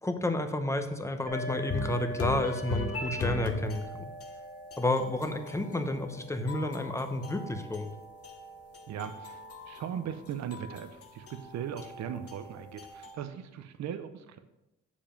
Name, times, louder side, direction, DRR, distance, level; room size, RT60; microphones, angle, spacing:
voice 1, 0.0-4.0 4.8-7.9, left 1 dB, 10° left, 7 dB, 0.8 m, -31 dB
sound 1, 1.3-8.8, right 1 dB, 85° right, 1.3 m, -45 dB
sound 2, 1.7-13.2, left 4 dB, 50° left, 1.1 m, -39 dB
voice 2, 8.9-14.4, right 8 dB, 65° right, 9 dB, 0.7 m, -39 dB
7.1 x 5.0 x 5.2 m, 0.91 s
cardioid pair, 90°, 30 cm